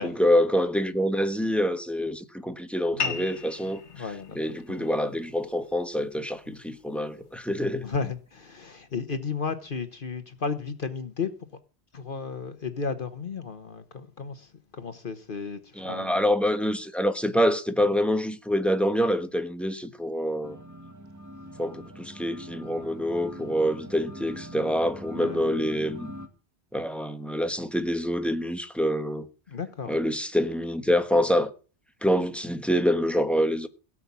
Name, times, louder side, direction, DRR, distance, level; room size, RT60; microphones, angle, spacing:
voice 1, 0.0-4.1 4.3-7.9 15.7-20.6 21.6-26.1 26.7-29.3 29.9-31.5 32.0-33.7, equal, ahead, 1.1 m, -26 dB
sound 1, 3.0-8.0, left 5 dB, 90° left, 1.6 m, -39 dB
voice 2, 3.9-4.4 4.7-4.9 7.8-11.3 11.9-14.5 14.8-15.6 15.8-16.2 25.1-25.4 29.5-29.9, left 5 dB, 50° left, 1.2 m, -33 dB
sound 2, 20.4-26.3, equal, 15° right, 1.6 m, -42 dB
17.0 x 6.1 x 8.4 m
omnidirectional pair, 1.1 m